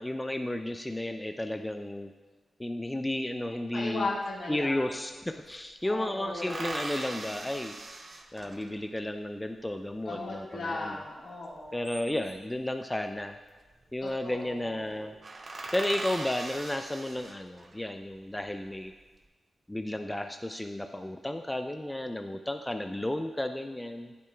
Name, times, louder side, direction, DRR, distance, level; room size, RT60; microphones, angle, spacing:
voice 1, 0.0-2.1 2.6-4.1 4.5-7.7 8.3-11.0 11.7-13.4 13.9-15.1 15.7-18.9 19.7-24.1, left 1 dB, 15° left, 7 dB, 0.4 m, -33 dB
voice 2, 3.7-4.9 5.8-6.7 10.1-11.8 14.0-15.0, left 2 dB, 70° left, -4 dB, 1.7 m, -37 dB
sound 1, 4.3-4.4 4.6-5.6 6.4-8.9 11.6-12.5 13.7-14.1 14.4-14.5 14.9-15.0 15.2-17.8 18.3-19.0, right 2 dB, 50° right, 0.7 m, -40 dB
8.3 x 6.8 x 2.3 m, 1.3 s
cardioid pair, 45°, 0 cm